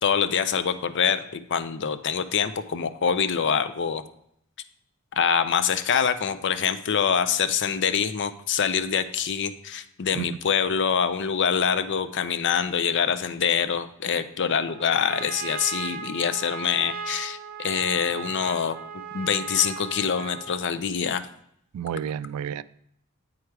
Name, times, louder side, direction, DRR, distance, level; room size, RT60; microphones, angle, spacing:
voice 1, 0.0-4.0 5.2-18.8 19.1-21.3, left 7 dB, 55° left, 12 dB, 0.5 m, -25 dB
Trumpet, 14.7-20.7, right 5 dB, 45° right, 0.6 m, -37 dB
voice 2, 21.7-22.6, right 8 dB, 80° right, 16 dB, 0.3 m, -31 dB
8.5 x 4.8 x 4.6 m, 0.72 s
head